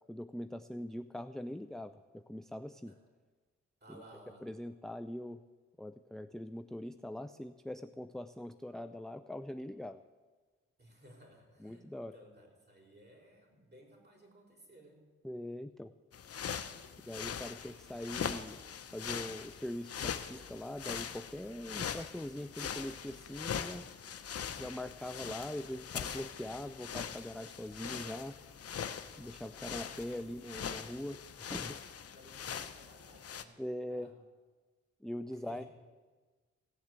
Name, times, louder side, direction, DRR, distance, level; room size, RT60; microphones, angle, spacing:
voice 1, 0.1-3.0 3.9-4.0 4.4-5.4 5.8-10.0 11.6-12.1 15.2-15.9 17.0-18.6 18.9-23.9 24.6-28.4 29.2-31.8 33.6-34.1 35.0-35.6, left 1 dB, ahead, 10 dB, 0.5 m, -42 dB
voice 2, 3.8-4.5 10.8-15.0 29.7-30.2 32.1-33.6 33.9-34.1 35.3-35.7, right 1 dB, 35° right, -1 dB, 5.4 m, -58 dB
sound 1, 16.1-33.4, left 7 dB, 55° left, 0.9 m, -42 dB
16.5 x 7.2 x 8.1 m, 1.4 s
supercardioid pair, 50°, 29 cm